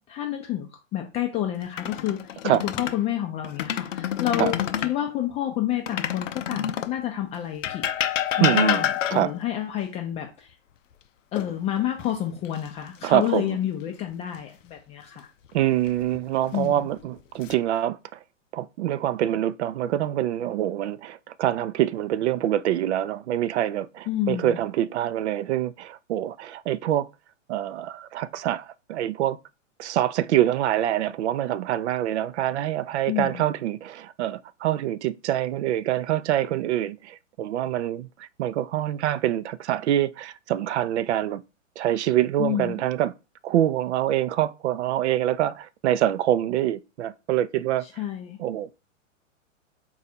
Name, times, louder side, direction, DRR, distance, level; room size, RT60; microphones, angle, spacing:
voice 1, 0.1-7.8 8.4-10.5 11.3-15.3 16.5-16.9 24.1-24.6 33.1-33.4 42.4-42.8 47.8-48.4, left 11 dB, 15° left, 0.4 m, -29 dB
sound 1, 1.6-3.0 3.4-5.0 5.9-7.0 7.6-9.4 11.4-12.0 12.4-12.7 15.6-16.2 16.9-17.5, left 10 dB, 70° left, 0.6 m, -28 dB
voice 2, 8.4-8.8 9.1-9.3 13.0-13.6 15.5-18.2 18.5-27.1 27.5-29.4 29.8-41.4 41.8-43.1 43.4-47.9 48.4-48.8, right 12 dB, 60° right, 0.5 m, -25 dB
4.0 x 2.4 x 4.2 m
hypercardioid pair, 115°, 39 cm